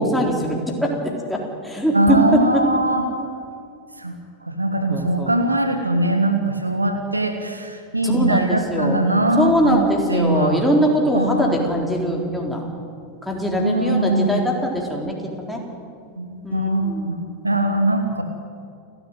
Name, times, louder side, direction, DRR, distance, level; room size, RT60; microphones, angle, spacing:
voice 1, 0.0-2.6 4.9-5.3 8.0-9.0 9.4-12.6 13.2-15.6 16.4-17.1, equal, ahead, -1 dB, 3.9 m, -22 dB
voice 2, 1.9-3.1 4.0-10.6 11.1-11.6 13.6-14.5 16.2-18.2, right 1 dB, 85° right, 6 dB, 1.7 m, -21 dB
29.5 x 11.5 x 9.2 m, 2.4 s
figure-of-eight pair, 90°, 0 cm